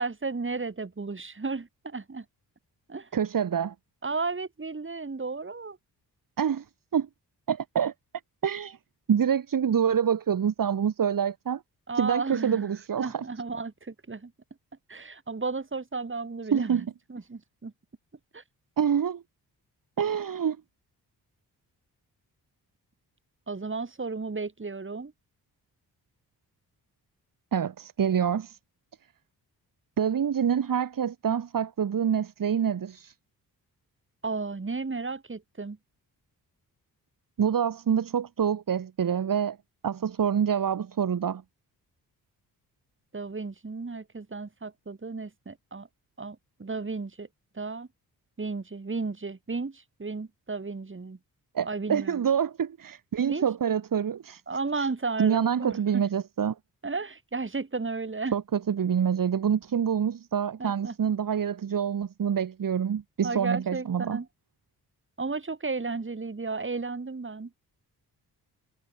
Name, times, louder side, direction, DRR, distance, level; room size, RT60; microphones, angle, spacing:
voice 1, 0.0-2.3 2.9-3.1 4.0-5.8 11.9-14.3 14.9-17.7 18.3-18.4 23.5-25.1 34.2-35.8 43.1-45.9 46.2-47.3 47.5-47.9 48.4-51.2 51.6-52.2 53.3-53.4 54.5-56.0 56.8-58.3 60.6-61.0 63.2-64.3 65.2-67.5, right 4 dB, 30° right, 3.6 m, -33 dB
voice 2, 3.1-3.7 6.4-6.6 6.9-7.1 7.5-7.9 8.4-8.8 9.1-11.6 12.0-13.2 16.5-16.9 18.8-19.2 20.0-20.6 27.5-28.6 30.0-33.1 37.4-39.6 39.8-41.4 51.5-54.4 54.7-54.9 55.2-56.6 58.3-64.2, right 8 dB, 55° right, 1.7 m, -26 dB
cardioid pair, 55°, 39 cm